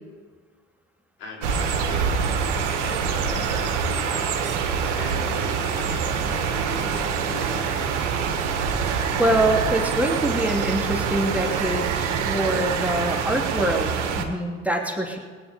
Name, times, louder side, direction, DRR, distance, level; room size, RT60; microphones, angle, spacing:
voice 1, 1.2-2.5 2.8-4.2 4.9-7.8, left 3 dB, 80° left, -2 dB, 3.8 m, -39 dB
sound 1, 1.4-14.2, right 6 dB, 75° right, 1.7 m, -26 dB
Water, 1.6-13.2, right 9 dB, 50° right, 1.1 m, -36 dB
voice 2, 8.9-15.2, right 1 dB, 5° right, 1 dB, 2.6 m, -25 dB
20.0 x 9.7 x 5.3 m, 1.5 s
hypercardioid pair, 60°, 35 cm